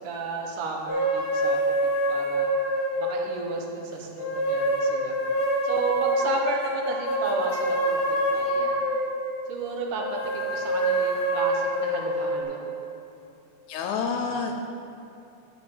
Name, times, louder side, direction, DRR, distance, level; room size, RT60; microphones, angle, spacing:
voice 1, 0.0-2.5 3.0-5.1 5.6-8.8 9.5-12.6 14.0-14.4, right 3 dB, 75° right, 1 dB, 2.6 m, -33 dB
sound 1, 0.9-3.6 4.2-9.3 9.9-12.4, right 1 dB, 35° left, 2.0 m, -26 dB
voice 2, 13.7-14.5, left 5 dB, 80° left, 3 dB, 1.8 m, -28 dB
8.2 x 6.9 x 6.9 m, 2.7 s
omnidirectional pair, 3.8 m